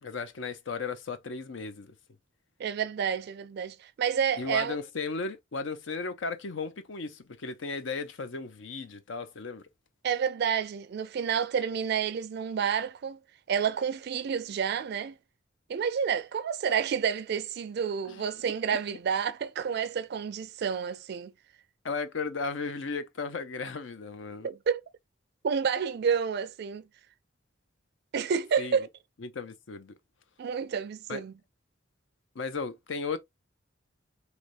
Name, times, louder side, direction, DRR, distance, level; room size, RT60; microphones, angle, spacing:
voice 1, 0.0-1.9 4.4-9.7 18.1-18.3 21.8-24.5 28.6-28.8 29.2-29.9 31.1-31.2 32.3-33.2, left 4 dB, 75° left, 0.6 m, -35 dB
voice 2, 2.6-4.8 10.0-13.2 13.5-15.1 15.7-21.3 24.4-24.8 25.4-26.8 28.1-28.9 30.4-31.3, right 7 dB, 60° right, 0.4 m, -29 dB
3.3 x 3.0 x 2.5 m
head